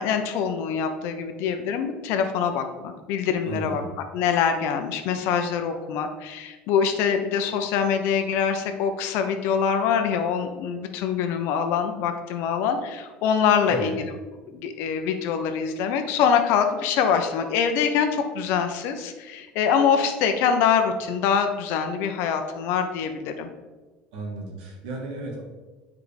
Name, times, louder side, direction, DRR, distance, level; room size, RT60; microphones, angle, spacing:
voice 1, 0.0-3.8 4.1-14.1 14.5-23.5, left 7 dB, 70° left, 7 dB, 0.8 m, -24 dB
voice 2, 3.4-3.9 13.7-14.0 24.1-25.4, right 2 dB, 90° right, 0 dB, 1.7 m, -33 dB
7.3 x 4.7 x 3.4 m, 1.2 s
cardioid pair, 125°, 4 cm